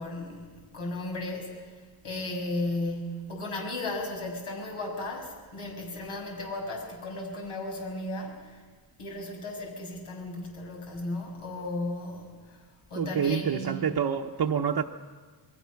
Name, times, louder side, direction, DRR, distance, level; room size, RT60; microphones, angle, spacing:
voice 1, 0.0-1.5 2.0-8.6 9.0-12.3 12.9-13.8, left 2 dB, 85° left, 6.2 m, -35 dB
voice 2, 13.0-14.8, right 7 dB, 50° right, 0.9 m, -27 dB
28.5 x 22.0 x 5.9 m
wide cardioid pair, 135°, 49 cm